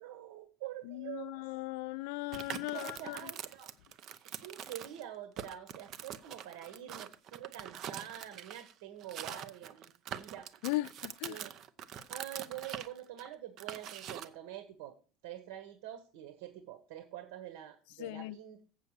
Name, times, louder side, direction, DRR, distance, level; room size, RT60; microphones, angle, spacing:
voice 1, 0.0-1.4 2.6-3.7 4.2-10.5 11.3-11.5 12.1-15.0 15.2-18.6, right 12 dB, 90° right, 1.5 m, -46 dB
voice 2, 0.9-3.2 10.6-11.4 18.0-18.4, left 20 dB, 75° left, 0.4 m, -38 dB
sound 1, 2.3-5.1 5.4-8.7 9.0-14.3, right 10 dB, 40° right, 0.7 m, -44 dB
7.9 x 6.7 x 6.5 m
cardioid pair, 160°, 0 cm